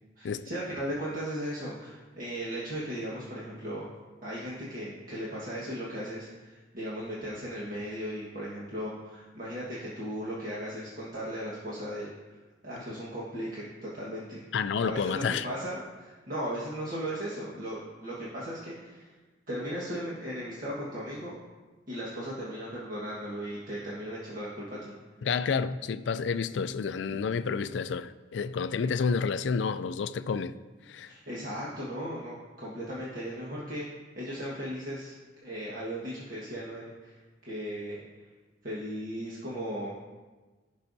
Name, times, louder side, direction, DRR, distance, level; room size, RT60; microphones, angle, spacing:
voice 1, 0.2-3.9 4.2-12.1 12.6-14.4 14.8-19.1 19.5-21.3 21.9-24.9 31.1-33.9 34.2-35.2 35.4-37.2 37.5-38.3 38.6-39.9, equal, 50° right, 1.5 m, -37 dB
voice 2, 14.5-15.5 25.2-30.5 30.9-31.1, left 5 dB, 70° left, 0.4 m, -30 dB
16.0 x 5.6 x 2.7 m
head